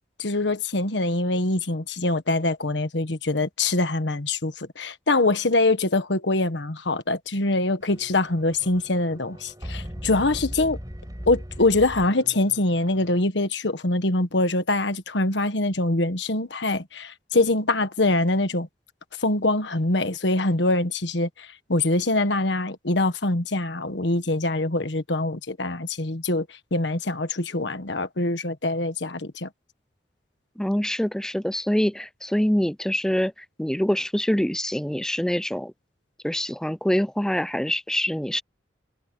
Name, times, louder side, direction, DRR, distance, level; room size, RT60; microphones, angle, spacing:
voice 1, 0.2-10.8 11.3-18.7 19.2-29.5, left 2 dB, 75° left, 1.5 m, -24 dB
sound 1, 7.8-13.2, equal, 20° right, 4.9 m, -39 dB
voice 2, 30.6-33.3 33.6-35.7 36.2-38.4, equal, 5° left, 0.4 m, -25 dB
head